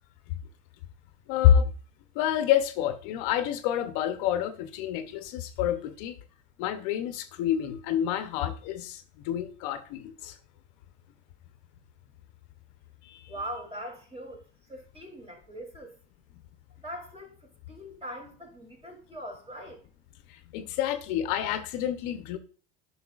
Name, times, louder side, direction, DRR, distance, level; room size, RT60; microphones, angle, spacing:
voice 1, 1.3-1.7 2.1-6.1 6.6-10.3 13.0-13.2 20.5-22.4, left 10 dB, 65° left, 0.9 m, -27 dB
voice 2, 13.3-14.4 14.7-15.9 16.8-17.3 17.7-19.8, right 1 dB, 20° right, 3.1 m, -41 dB
9.7 x 5.7 x 2.4 m
supercardioid pair, 95°, 34 cm